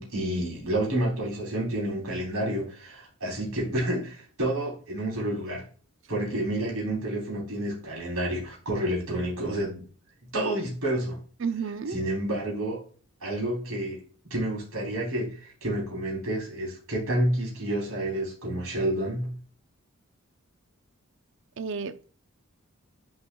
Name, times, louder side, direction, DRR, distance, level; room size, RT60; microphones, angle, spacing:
voice 1, 0.0-5.6 6.1-9.9 10.3-11.2 11.9-12.8 13.2-14.0 14.3-19.3, right 1 dB, 85° right, 3.3 m, -29 dB
voice 2, 11.4-12.0 21.6-22.1, right 5 dB, 60° right, 0.5 m, -31 dB
10.5 x 4.7 x 2.2 m
head